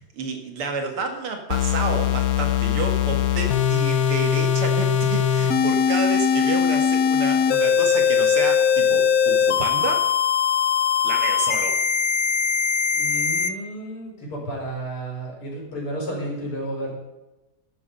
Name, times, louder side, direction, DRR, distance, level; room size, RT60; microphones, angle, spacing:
voice 1, 0.0-10.1 11.0-11.8, right 4 dB, 80° right, 4 dB, 2.8 m, -30 dB
sound 1, 1.5-13.5, left 7 dB, 55° left, 1.1 m, -21 dB
voice 2, 12.9-16.9, right 1 dB, 80° left, -2 dB, 6.1 m, -32 dB
14.5 x 11.0 x 5.6 m, 1.0 s
omnidirectional pair, 2.4 m